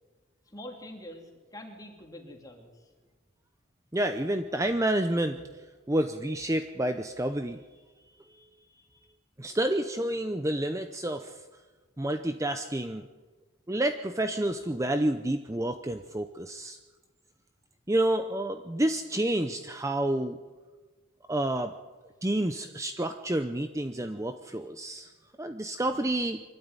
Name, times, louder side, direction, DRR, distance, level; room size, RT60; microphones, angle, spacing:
voice 1, 0.5-2.7, left 1 dB, 15° left, 1 dB, 3.1 m, -45 dB
voice 2, 3.9-7.6 8.2-8.4 9.4-11.5 12.0-13.1 13.7-16.8 17.9-20.4 21.3-21.7 22.2-25.1 25.4-26.4, right 1 dB, 15° right, 8 dB, 0.7 m, -29 dB
24.5 x 12.5 x 9.7 m, 1.3 s
head